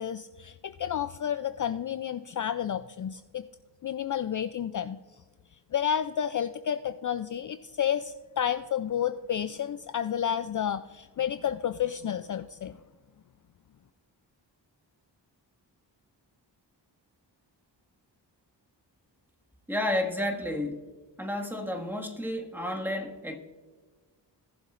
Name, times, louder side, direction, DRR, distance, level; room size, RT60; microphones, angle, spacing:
voice 1, 0.0-3.4 3.8-5.0 5.7-12.8, left 9 dB, 45° left, 11 dB, 0.4 m, -31 dB
voice 2, 19.7-20.9 21.2-23.4, left 1 dB, 5° right, 1 dB, 1.8 m, -31 dB
19.0 x 7.2 x 2.5 m, 1.4 s
cardioid pair, 55°, 43 cm